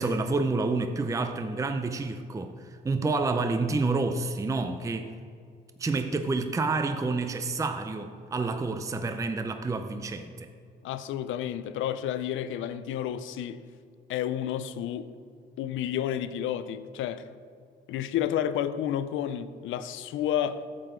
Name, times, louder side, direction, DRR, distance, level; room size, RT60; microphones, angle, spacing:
voice 1, 0.0-5.1 5.8-10.5, right 3 dB, 15° right, 0.5 m, -29 dB
voice 2, 10.8-13.6 14.1-15.1 15.6-17.4 17.9-20.7, left 10 dB, 80° left, 0.5 m, -31 dB
9.4 x 7.6 x 3.8 m
cardioid pair, 90°, 20 cm